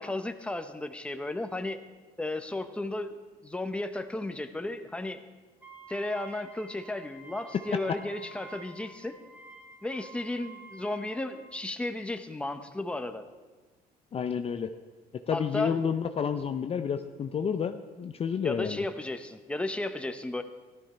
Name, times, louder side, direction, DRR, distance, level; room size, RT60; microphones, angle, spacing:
voice 1, 0.0-1.8 2.2-5.2 5.9-9.2 9.8-13.3 15.3-15.8 18.4-20.4, left 2 dB, 5° left, 8 dB, 0.8 m, -34 dB
Wind instrument woodwind instrument, 5.6-11.5, right 2 dB, 10° right, 1.6 m, -50 dB
voice 2, 14.1-14.7 15.1-18.8, left 7 dB, 35° left, 8 dB, 0.5 m, -30 dB
14.0 x 12.5 x 4.3 m, 1.3 s
cardioid pair, 110°, 17 cm